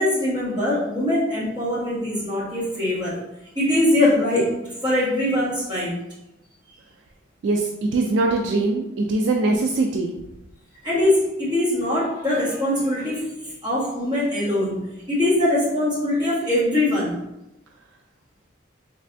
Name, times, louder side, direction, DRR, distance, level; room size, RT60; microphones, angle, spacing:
voice 1, 0.0-3.2 3.5-5.9 10.8-17.2, left 1 dB, 20° right, -9 dB, 1.4 m, -22 dB
voice 2, 7.4-10.1, right 2 dB, 65° right, 2 dB, 0.3 m, -22 dB
3.3 x 3.2 x 2.5 m, 0.92 s
head